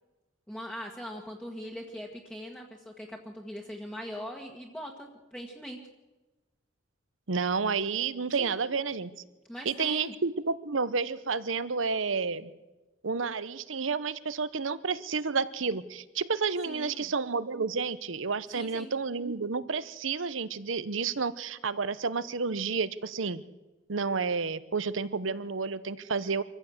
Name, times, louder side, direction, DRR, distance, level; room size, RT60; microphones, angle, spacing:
voice 1, 0.5-5.8 8.4-8.5 9.5-10.1 16.7-17.1 18.5-18.9, equal, 5° left, -1 dB, 1.8 m, -41 dB
voice 2, 7.3-9.1 9.6-12.5 13.0-23.4 23.9-26.4, right 5 dB, 75° right, 16 dB, 0.9 m, -30 dB
25.0 x 15.0 x 8.0 m, 1.1 s
head